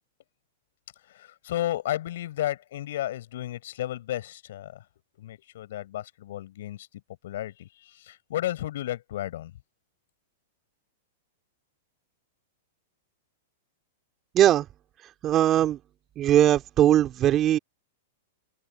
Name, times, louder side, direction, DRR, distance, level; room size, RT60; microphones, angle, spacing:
voice 1, 1.1-4.8 5.2-6.9 7.2-9.5, left 13 dB, 70° left, 5.7 m, -33 dB
voice 2, 14.3-14.6 15.2-15.8 16.2-17.6, right 12 dB, 30° right, 2.5 m, -20 dB
hypercardioid pair, 125°, 0 cm